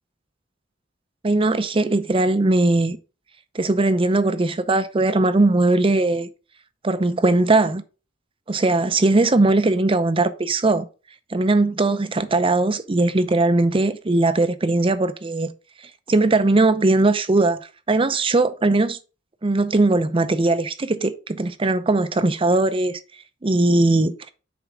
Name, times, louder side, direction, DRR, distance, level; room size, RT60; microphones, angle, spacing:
voice 1, 1.2-3.0 3.5-6.3 6.8-7.8 8.5-10.8 11.3-15.5 16.1-17.6 17.9-19.0 19.4-23.0 23.4-24.3, right 2 dB, 30° right, 0.6 m, -19 dB
7.0 x 4.7 x 3.5 m
head